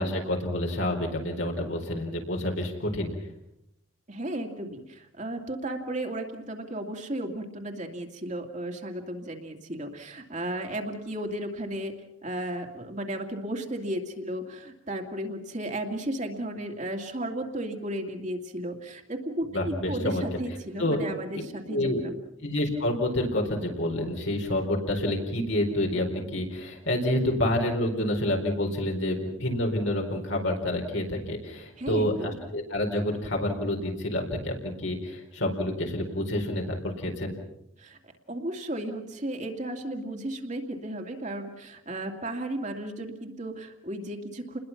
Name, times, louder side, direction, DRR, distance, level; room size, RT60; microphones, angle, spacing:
voice 1, 0.0-3.1 19.5-20.2 20.8-21.0 21.7-22.0 22.4-37.3, left 1 dB, 70° left, 1 dB, 4.3 m, -28 dB
voice 2, 4.1-11.9 12.2-22.2 31.8-32.4 37.8-38.0 38.3-44.6, right 1 dB, 40° right, 3 dB, 2.4 m, -34 dB
29.5 x 21.0 x 5.9 m, 0.83 s
head